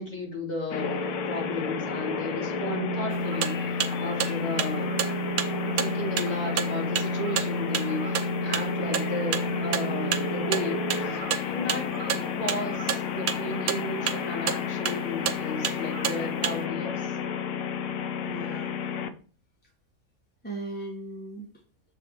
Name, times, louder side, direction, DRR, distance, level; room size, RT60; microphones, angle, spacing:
voice 1, 0.0-4.9 5.6-17.1, left 2 dB, 30° left, -4 dB, 2.6 m, -34 dB
sound 1, 0.7-19.1, left 4 dB, 65° left, 0.9 m, -30 dB
sound 2, 3.1-16.6, right 9 dB, 80° right, 1.1 m, -31 dB
voice 2, 12.1-12.5 18.2-18.8 20.4-21.5, right 2 dB, 10° left, -2 dB, 1.1 m, -38 dB
6.9 x 3.4 x 4.7 m, 0.41 s
omnidirectional pair, 1.5 m